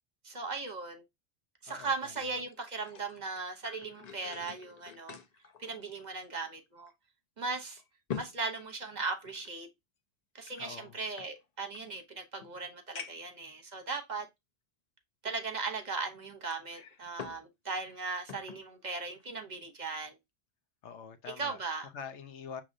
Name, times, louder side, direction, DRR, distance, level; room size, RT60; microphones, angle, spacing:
voice 1, 0.2-1.0 1.6-5.2 5.6-6.9 7.4-7.8 8.2-9.7 10.3-14.3 15.2-20.2 21.4-21.9, right 4 dB, 45° right, 0.9 m, -38 dB
voice 2, 1.7-2.4 10.6-11.0 20.8-22.6, left 7 dB, 85° left, 1.0 m, -46 dB
sound 1, 2.5-6.5 6.9-7.0 7.5-9.5 10.4-11.8 12.4-12.5 12.9-13.4 14.1-14.2 16.5-17.5 17.8-18.6 19.1-19.3, left 7 dB, 50° left, 0.6 m, -46 dB
6.1 x 3.0 x 2.6 m
omnidirectional pair, 1.1 m